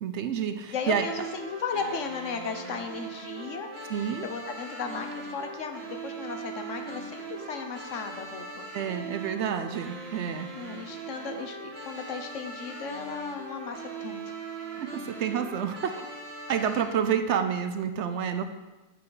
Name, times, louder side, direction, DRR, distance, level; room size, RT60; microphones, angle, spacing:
voice 1, 0.0-1.1 3.9-4.3 8.7-10.5 14.9-15.9 16.5-18.5, right 8 dB, 65° right, 8 dB, 0.8 m, -29 dB
voice 2, 0.7-3.7 4.2-8.7 10.6-14.5, left 5 dB, 70° left, 6 dB, 1.2 m, -36 dB
sound 1, 0.8-16.8, right 3 dB, 50° right, 1.5 m, -40 dB
8.6 x 7.6 x 3.9 m, 1.1 s
omnidirectional pair, 1.4 m